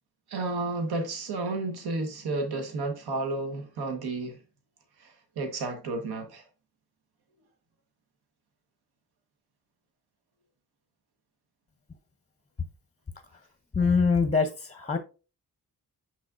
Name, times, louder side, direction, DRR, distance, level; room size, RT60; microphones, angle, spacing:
voice 1, 0.3-4.4 5.0-6.4, right 3 dB, 85° right, 1.3 m, -32 dB
voice 2, 13.7-15.0, left 5 dB, 20° left, 0.6 m, -24 dB
6.6 x 6.1 x 2.4 m
wide cardioid pair, 130°, 38 cm